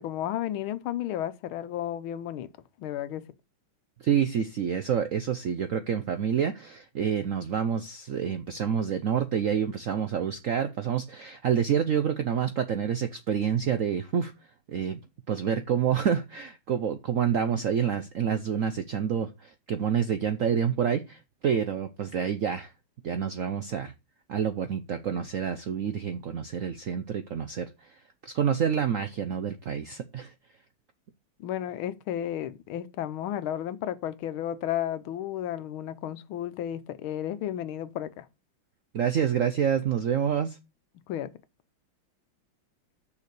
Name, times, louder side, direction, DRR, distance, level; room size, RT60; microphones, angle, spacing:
voice 1, 0.0-2.5 2.8-3.2 31.4-38.2 41.1-41.3, left 11 dB, 85° left, 1.6 m, -33 dB
voice 2, 4.0-14.3 14.7-15.0 15.3-22.7 23.0-23.9 24.3-27.7 28.2-30.3 38.9-40.6, right 8 dB, 75° right, 0.7 m, -28 dB
6.6 x 5.7 x 6.7 m
omnidirectional pair, 2.2 m